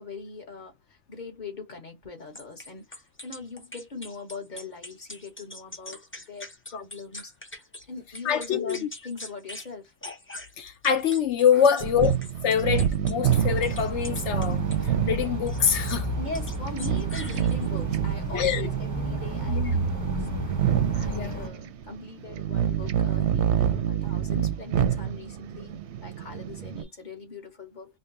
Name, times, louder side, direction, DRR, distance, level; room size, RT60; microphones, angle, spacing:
voice 1, 0.0-7.3 7.9-9.9 11.5-11.8 16.2-20.3 20.9-28.0, left 3 dB, 35° left, 1.2 m, -41 dB
sound 1, 2.3-7.8 8.1-9.7 10.0-14.9 15.5-16.1 16.3-17.8, left 1 dB, 15° left, 0.4 m, -42 dB
voice 2, 8.2-8.8 10.6-12.2 12.4-16.1 18.3-18.7 19.5-19.9 21.0-21.4, left 8 dB, 65° left, 0.8 m, -25 dB
sound 2, 11.8-26.8, right 9 dB, 65° right, 0.8 m, -28 dB
sound 3, 13.2-21.5, right 2 dB, 15° right, 0.7 m, -32 dB
5.0 x 2.2 x 2.5 m
omnidirectional pair, 1.4 m